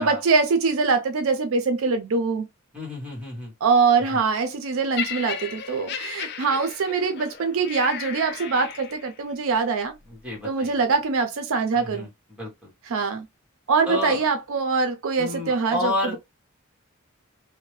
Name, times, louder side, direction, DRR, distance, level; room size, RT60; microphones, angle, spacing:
voice 1, 0.0-2.5 3.6-9.9 10.4-12.1 12.9-13.3 13.7-16.2, right 4 dB, 65° right, 0.4 m, -23 dB
voice 2, 2.7-3.5 4.1-4.2 10.1-10.8 11.7-12.7 13.9-14.2 15.2-16.2, left 2 dB, 5° right, 1.2 m, -30 dB
Laughter, 5.0-9.2 10.0-10.2, left 8 dB, 50° left, 0.4 m, -35 dB
2.7 x 2.1 x 3.0 m
head